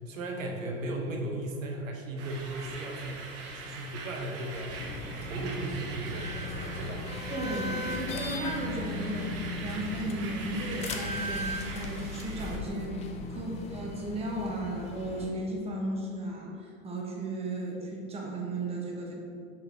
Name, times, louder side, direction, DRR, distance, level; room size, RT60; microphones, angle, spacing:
voice 1, 0.0-3.2 3.5-4.7 5.2-6.3 6.8-7.1 9.5-9.7 13.2-13.4, right 2 dB, 70° right, 1 dB, 1.0 m, -36 dB
sound 1, 2.2-12.6, right 3 dB, 35° right, 0.9 m, -41 dB
sound 2, 4.7-15.3, left 2 dB, 15° left, 0.4 m, -38 dB
voice 2, 7.3-19.1, right 1 dB, 15° right, -2 dB, 1.0 m, -35 dB
5.8 x 5.7 x 3.2 m, 2.6 s
figure-of-eight pair, 95°, 41 cm